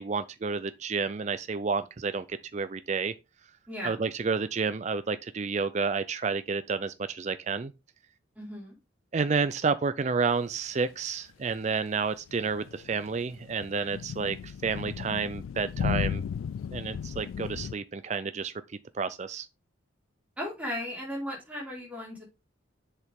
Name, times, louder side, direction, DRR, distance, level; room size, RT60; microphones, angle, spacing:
voice 1, 0.0-3.1 3.8-7.7 9.1-16.2 16.7-19.5, right 4 dB, 35° right, 0.4 m, -30 dB
voice 2, 3.7-4.0 8.3-8.7 20.4-22.2, equal, 5° right, 4.4 m, -36 dB
sound 1, 12.3-17.7, left 7 dB, 85° left, 0.3 m, -35 dB
7.4 x 6.6 x 3.6 m
head